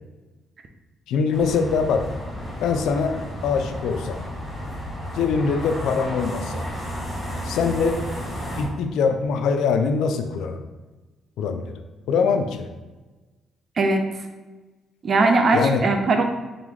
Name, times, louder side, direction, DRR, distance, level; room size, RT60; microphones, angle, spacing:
voice 1, 1.1-2.1 2.6-3.2 3.4-4.2 5.1-6.7 7.4-8.0 8.6-10.6 11.4-11.8 12.1-12.7 15.5-15.8, left 5 dB, 85° left, 7 dB, 0.4 m, -23 dB
sound 1, 1.3-8.6, equal, 5° left, 1.3 m, -32 dB
voice 2, 13.8-14.1 15.0-16.2, right 3 dB, 50° right, 6 dB, 0.6 m, -19 dB
3.8 x 3.5 x 3.3 m, 1.2 s
cardioid pair, 90°, 0 cm